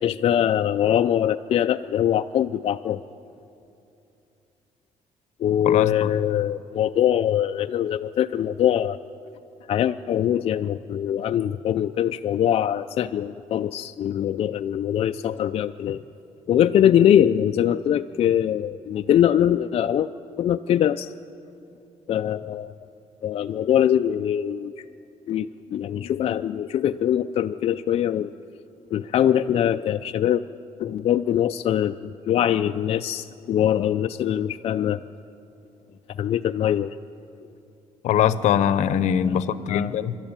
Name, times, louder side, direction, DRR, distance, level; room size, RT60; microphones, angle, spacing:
voice 1, 0.0-3.0 5.4-9.0 9.7-16.0 16.5-20.1 20.4-21.1 22.1-22.7 23.2-24.7 25.3-28.3 28.9-30.4 30.8-35.0 36.2-36.9 39.7-39.9, left 10 dB, 50° left, 7 dB, 0.4 m, -22 dB
voice 2, 5.6-6.1 38.0-40.2, left 9 dB, 75° left, 15 dB, 0.8 m, -22 dB
25.0 x 12.0 x 9.0 m, 2.7 s
cardioid pair, 135°, 12 cm